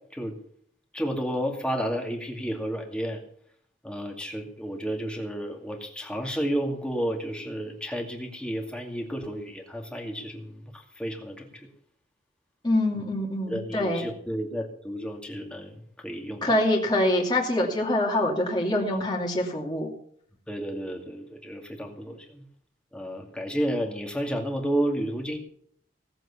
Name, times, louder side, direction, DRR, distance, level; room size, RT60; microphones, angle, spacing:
voice 1, 0.9-3.2 3.8-11.7 12.9-13.1 13.5-16.5 20.5-22.4 22.9-25.4, equal, 5° left, 2 dB, 2.3 m, -31 dB
voice 2, 12.6-14.0 16.4-19.9, left 1 dB, 25° left, -2 dB, 2.6 m, -25 dB
18.0 x 7.8 x 7.1 m, 0.64 s
head